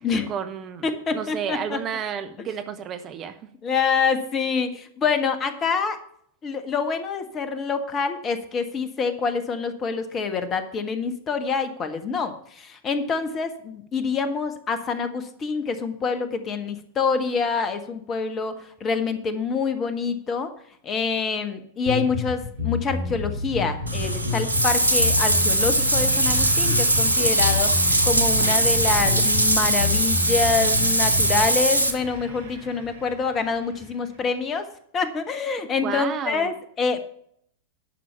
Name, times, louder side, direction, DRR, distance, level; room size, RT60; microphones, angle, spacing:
voice 1, 0.3-0.9 1.1-3.4 35.8-36.5, right 8 dB, 30° right, 9 dB, 0.9 m, -31 dB
voice 2, 0.8-1.8 3.6-6.0 6.4-20.5 20.8-27.7 28.0-34.7 34.9-37.1, left 5 dB, 25° left, 9 dB, 1.5 m, -26 dB
sound 1, 21.9-31.5, left 4 dB, 85° right, 2.6 m, -29 dB
sound 2, 22.6-34.2, right 2 dB, 60° right, 2.0 m, -38 dB
Bathtub (filling or washing), 23.9-31.9, right 1 dB, 90° left, 1.3 m, -21 dB
11.0 x 6.2 x 7.0 m, 0.65 s
figure-of-eight pair, 90°, 0 cm